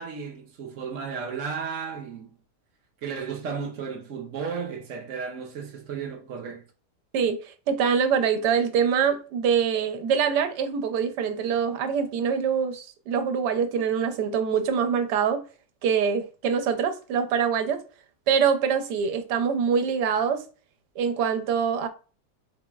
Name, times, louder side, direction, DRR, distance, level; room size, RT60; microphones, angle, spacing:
voice 1, 0.0-2.4 3.0-6.6, right 6 dB, 60° right, 0.9 m, -34 dB
voice 2, 7.1-15.4 15.8-17.8 18.3-20.4 21.0-21.9, right 7 dB, 85° right, 1.2 m, -24 dB
3.8 x 2.9 x 2.2 m
omnidirectional pair, 1.8 m